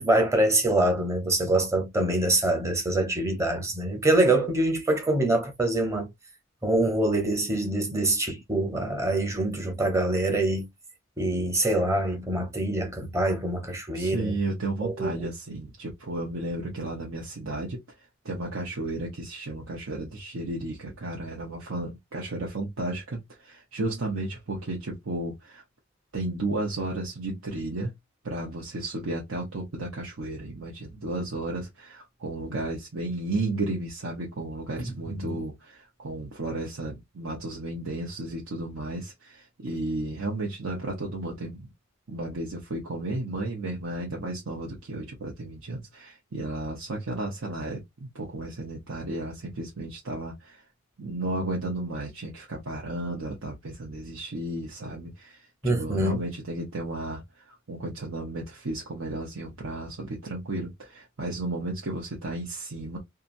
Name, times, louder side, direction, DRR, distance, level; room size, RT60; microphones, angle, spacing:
voice 1, 0.0-6.1 6.6-10.7 11.2-14.4 14.8-15.3 34.8-35.4 55.6-56.2, right 1 dB, 15° right, 0.7 m, -25 dB
voice 2, 13.9-17.8 18.2-25.6 26.1-27.9 28.2-41.7 42.1-50.6 51.0-57.2 57.5-63.0, right 2 dB, 90° right, 0.8 m, -33 dB
2.8 x 2.4 x 2.5 m
head